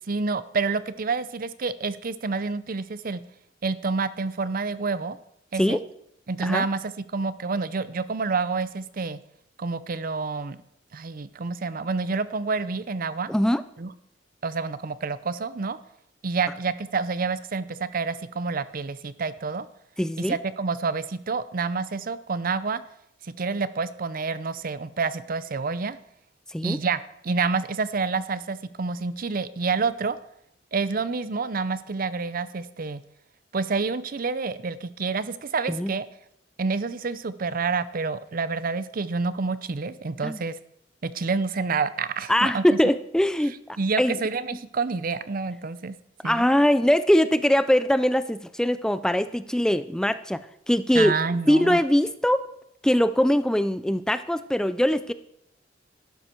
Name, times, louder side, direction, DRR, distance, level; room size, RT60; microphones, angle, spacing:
voice 1, 0.1-3.2 3.6-5.2 5.5-5.8 6.3-9.2 9.6-10.6 10.9-13.3 13.8-13.9 14.4-15.8 16.2-19.7 20.2-22.8 23.2-26.0 26.6-30.2 30.7-33.0 33.5-36.1 36.6-40.6 41.0-42.8 43.8-46.0 46.2-46.4 50.9-51.8, right 4 dB, 50° right, 15 dB, 0.6 m, -28 dB
voice 2, 13.3-13.6 20.0-20.4 26.5-26.8 35.7-35.9 40.2-40.4 42.3-44.2 46.2-50.4 50.7-51.2 51.5-52.5 52.8-55.1, equal, 5° left, 13 dB, 0.3 m, -22 dB
12.5 x 11.0 x 4.5 m, 0.77 s
head